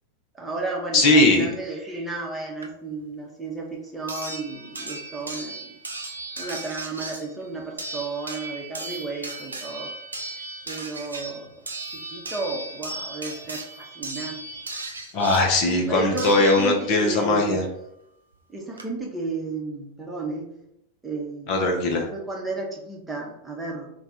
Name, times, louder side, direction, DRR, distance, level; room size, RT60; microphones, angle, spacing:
voice 1, 0.3-5.7 6.4-9.9 10.7-11.5 11.9-14.4 15.9-17.6 18.5-20.5 21.0-21.5 21.9-23.9, right 3 dB, 10° right, -2 dB, 0.9 m, -33 dB
voice 2, 0.9-1.5 15.1-17.6 21.5-22.1, left 2 dB, 45° left, 1 dB, 0.6 m, -19 dB
sound 1, 2.6-2.7 4.1-17.1 18.3-18.4 18.8-18.9, right 2 dB, 75° right, 0.5 m, -36 dB
3.4 x 2.3 x 4.2 m, 0.79 s
figure-of-eight pair, 90°, 0 cm